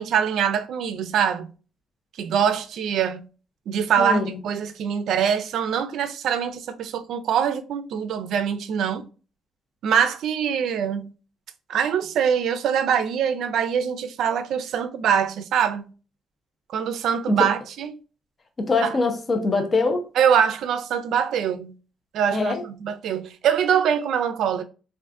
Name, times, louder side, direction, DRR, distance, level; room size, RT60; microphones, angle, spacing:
voice 1, 0.0-1.5 2.1-3.2 3.7-9.1 9.8-11.1 11.7-15.9 16.7-17.9 18.8-18.9 20.2-21.7 22.1-24.6, right 8 dB, 70° right, 0.3 m, -23 dB
voice 2, 4.0-4.3 17.3-17.4 18.6-20.0 22.3-22.6, left 3 dB, 30° left, 0.4 m, -23 dB
3.5 x 2.4 x 2.4 m
cardioid pair, 130°, 0 cm